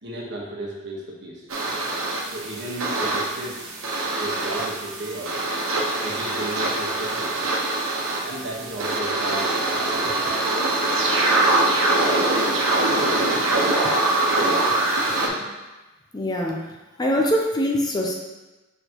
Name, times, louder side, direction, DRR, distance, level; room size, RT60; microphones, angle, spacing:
voice 1, 0.0-1.5 2.3-3.6 4.2-5.4 6.0-7.5 8.2-10.1, right 1 dB, 55° right, -3 dB, 1.3 m, -34 dB
sound 1, 1.5-15.3, right 2 dB, 85° right, 1.1 m, -23 dB
voice 2, 16.1-16.6 17.0-18.1, equal, 20° left, 0 dB, 0.6 m, -23 dB
6.4 x 4.9 x 3.0 m, 1.1 s
head